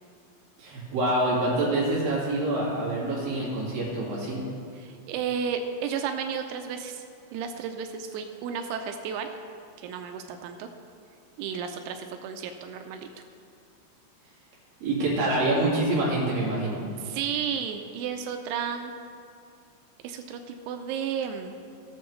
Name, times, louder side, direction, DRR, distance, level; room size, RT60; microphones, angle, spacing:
voice 1, 0.6-4.4 14.8-16.8, right 2 dB, 55° right, -6 dB, 3.4 m, -26 dB
voice 2, 4.7-7.1 7.3-9.4 9.8-10.7 11.4-13.0 17.0-18.9 20.0-21.5, right 7 dB, 85° right, 6 dB, 3.0 m, -33 dB
18.5 x 7.0 x 3.1 m, 2.3 s
omnidirectional pair, 5.4 m